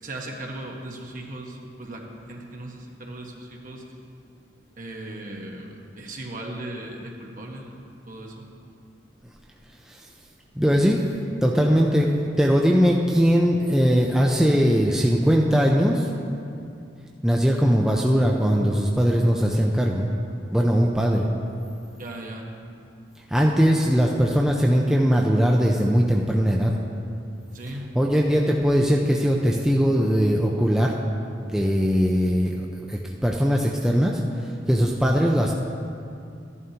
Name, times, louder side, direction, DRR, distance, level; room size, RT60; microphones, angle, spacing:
voice 1, 0.0-3.8 4.8-8.5 22.0-22.5 27.5-27.9, right 1 dB, 45° right, 0 dB, 1.2 m, -37 dB
voice 2, 10.6-11.0 11.4-16.1 17.2-20.1 20.5-21.3 23.3-26.7 27.9-30.9 31.4-32.6 32.9-34.2 34.7-35.5, equal, 5° right, -1 dB, 0.5 m, -20 dB
13.5 x 11.0 x 2.9 m, 2.5 s
head